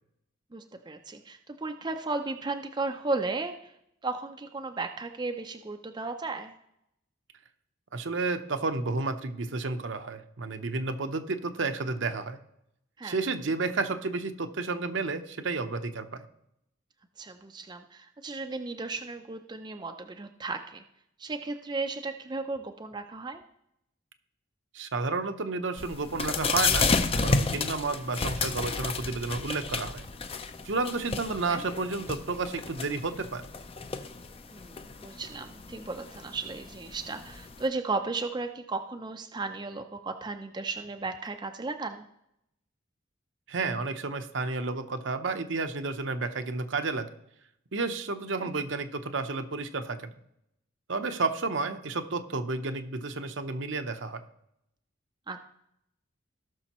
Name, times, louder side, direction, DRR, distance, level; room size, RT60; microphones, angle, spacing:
voice 1, 0.5-3.7 4.0-6.5 13.0-13.2 17.2-20.8 21.2-23.4 31.5-31.6 34.5-42.1 48.4-48.5 55.3-55.5, right 3 dB, 20° right, 6 dB, 0.4 m, -35 dB
voice 2, 7.9-12.4 13.0-16.2 24.7-26.9 27.1-30.0 30.6-33.4 43.5-47.1 47.7-50.1 50.9-54.2, right 3 dB, 65° right, 7 dB, 0.8 m, -31 dB
sound 1, 25.8-37.7, left 4 dB, 30° left, 0.5 m, -32 dB
17.5 x 6.3 x 3.0 m, 0.79 s
head